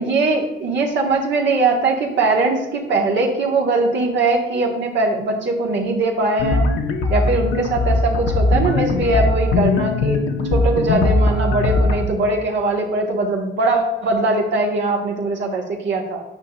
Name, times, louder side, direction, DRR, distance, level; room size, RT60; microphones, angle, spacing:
voice 1, 0.0-6.7 7.1-16.2, right 3 dB, 65° right, 0 dB, 1.3 m, -21 dB
sound 1, 6.4-12.1, left 2 dB, 75° left, 0.9 m, -19 dB
8.7 x 5.2 x 2.3 m, 1.1 s
cardioid pair, 90°, 20 cm